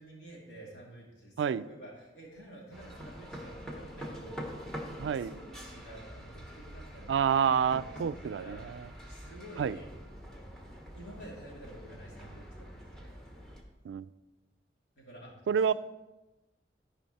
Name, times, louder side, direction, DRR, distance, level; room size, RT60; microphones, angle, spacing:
voice 1, 0.0-4.7 5.1-7.2 7.6-8.7 9.0-9.9 10.9-13.1 14.9-15.7, right 1 dB, 80° left, -4 dB, 3.0 m, -50 dB
sound 1, 2.7-13.6, equal, 5° left, 1.0 m, -45 dB
voice 2, 5.0-5.3 7.1-8.8 9.6-9.7 13.8-14.1 15.5-15.7, right 7 dB, 90° right, 17 dB, 0.3 m, -28 dB
13.5 x 5.0 x 4.2 m, 1.1 s
head